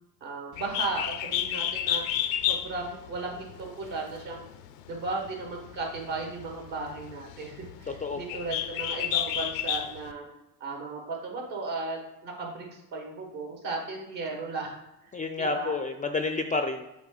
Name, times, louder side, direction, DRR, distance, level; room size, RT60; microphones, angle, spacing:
voice 1, 0.2-2.0 2.4-4.4 4.9-10.3 10.6-14.7 15.0-15.1 15.4-15.8, right 3 dB, 60° right, 1 dB, 1.9 m, -35 dB
Bird, 0.5-10.1, left 11 dB, 80° left, 0.6 m, -32 dB
voice 2, 7.9-8.2 15.1-16.8, left 3 dB, 20° left, 6 dB, 0.4 m, -29 dB
7.3 x 3.5 x 3.7 m, 0.93 s
hypercardioid pair, 50°, 48 cm